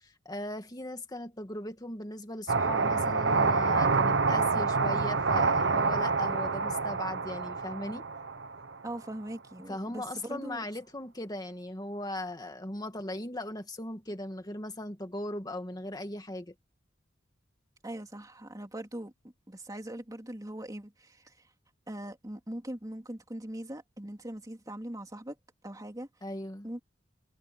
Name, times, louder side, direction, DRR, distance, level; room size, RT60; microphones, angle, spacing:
voice 1, 0.0-8.1 9.7-16.5 26.2-26.7, left 1 dB, 20° left, 2.2 m, -38 dB
sound 1, 2.5-9.0, right 4 dB, 70° right, 1.1 m, -27 dB
voice 2, 8.8-10.7 17.8-19.1 19.5-21.3 21.9-25.3 25.6-26.1 26.6-26.8, right 1 dB, 20° right, 2.9 m, -41 dB
head